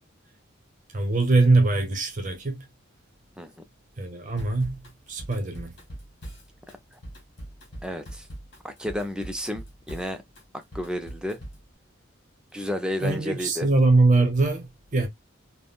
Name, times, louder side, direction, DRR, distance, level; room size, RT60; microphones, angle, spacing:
voice 1, 0.9-2.6 4.0-4.8 5.1-5.7 13.0-15.1, right 3 dB, 40° right, 0.7 m, -22 dB
Drum kit / Drum, 4.4-11.7, right 1 dB, 60° left, 1.5 m, -42 dB
voice 2, 7.8-8.3 8.6-10.2 10.7-11.4 12.5-13.7, left 1 dB, 5° right, 0.4 m, -31 dB
3.5 x 2.1 x 2.2 m
head